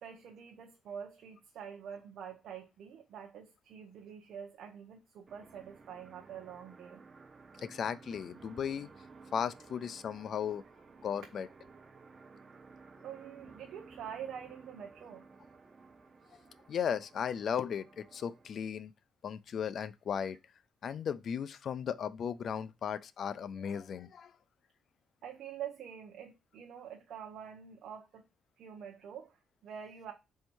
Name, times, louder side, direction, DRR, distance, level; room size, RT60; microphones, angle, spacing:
voice 1, 0.0-7.0 13.0-15.3 25.2-28.2 28.6-30.1, right 8 dB, 70° right, 0.6 m, -46 dB
sound 1, 5.3-18.6, right 4 dB, 35° right, 0.5 m, -56 dB
voice 2, 7.6-8.9 9.3-10.6 11.0-11.5 16.7-18.9 19.2-20.4 20.8-24.3, left 8 dB, 60° left, 0.3 m, -36 dB
4.4 x 2.7 x 4.4 m
cardioid pair, 90°, 0 cm